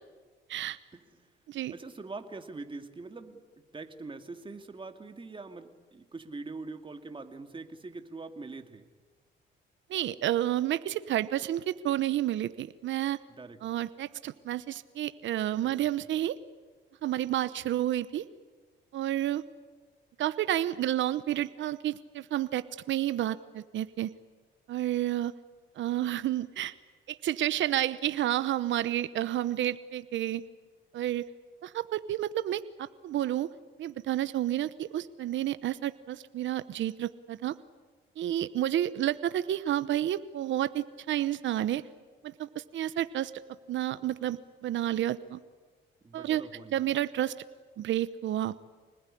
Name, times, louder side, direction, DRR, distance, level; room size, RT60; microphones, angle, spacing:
voice 1, 1.7-3.4 3.7-8.9 13.4-13.6 15.6-15.7 46.0-46.8, right 3 dB, 25° right, 6 dB, 2.4 m, -43 dB
voice 2, 9.9-13.2 13.6-16.3 17.0-18.2 18.9-19.4 20.2-24.1 24.7-25.3 25.8-26.7 27.1-30.4 30.9-31.3 31.6-33.5 33.8-37.6 38.2-41.8 42.2-43.3 43.7-44.4 44.6-45.4 46.1-46.4 46.7-47.4 47.8-48.5, right 12 dB, 70° right, 14 dB, 1.0 m, -30 dB
26.0 x 20.0 x 10.0 m, 1.4 s
cardioid pair, 90°, 20 cm